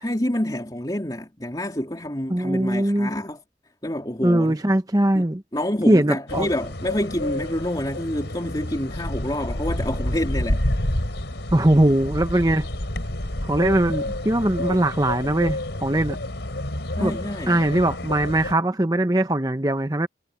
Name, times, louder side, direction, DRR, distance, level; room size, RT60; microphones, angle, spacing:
voice 1, 0.0-3.4 3.8-4.6 5.1-5.3 5.5-10.6 17.0-17.6, left 1 dB, 25° left, 3.3 m, -27 dB
voice 2, 2.3-3.1 4.2-5.4 5.9-6.5 11.5-12.7 13.4-16.2 17.0-17.1 17.5-20.1, right 1 dB, 20° right, 1.0 m, -21 dB
sound 1, 6.3-18.5, left 1 dB, 85° left, 4.0 m, -29 dB
head